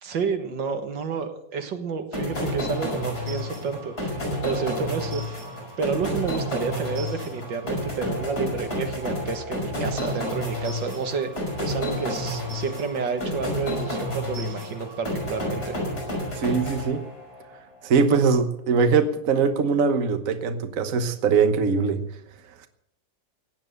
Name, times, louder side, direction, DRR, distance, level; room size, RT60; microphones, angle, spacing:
voice 1, 0.0-4.2 4.4-5.4 5.8-11.3 11.6-15.8, right 5 dB, 85° right, 2.2 m, -30 dB
sound 1, 2.1-17.4, left 1 dB, 60° left, 6.3 m, -30 dB
voice 2, 16.4-17.0 17.8-22.0, right 5 dB, 50° right, 1.4 m, -22 dB
16.5 x 10.0 x 6.6 m
omnidirectional pair, 1.9 m